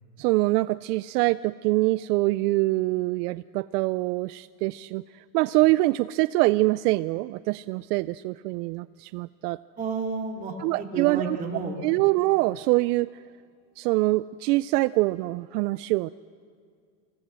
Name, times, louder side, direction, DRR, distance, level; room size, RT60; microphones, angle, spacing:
voice 1, 0.2-9.6 10.6-11.4 11.8-13.1 13.8-16.1, right 20 dB, 70° right, 16 dB, 0.5 m, -24 dB
voice 2, 9.8-11.8, right 4 dB, 15° right, 0 dB, 2.7 m, -31 dB
25.5 x 17.0 x 7.5 m, 2.2 s
supercardioid pair, 160°, 49 cm